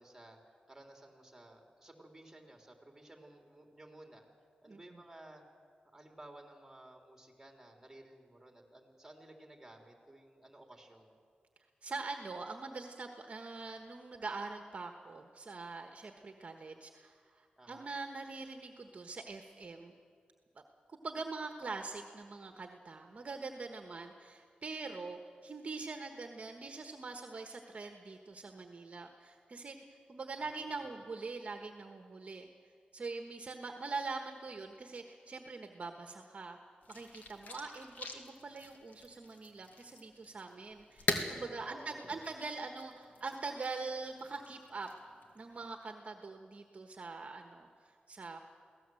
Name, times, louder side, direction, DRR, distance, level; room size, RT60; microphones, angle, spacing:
voice 1, 0.0-4.3 4.6-5.4 5.9-11.2 17.6-17.9 30.4-31.0 41.5-42.4, right 1 dB, 10° right, 2 dB, 3.5 m, -55 dB
voice 2, 4.7-5.0 11.8-19.9 20.5-20.6 20.9-32.5 32.9-36.6 36.9-44.9 45.3-48.4, right 3 dB, 45° right, 5 dB, 1.3 m, -43 dB
sound 1, 36.8-45.7, left 3 dB, 65° left, 2.1 m, -43 dB
23.5 x 17.0 x 7.8 m, 2.2 s
wide cardioid pair, 100°, 3 cm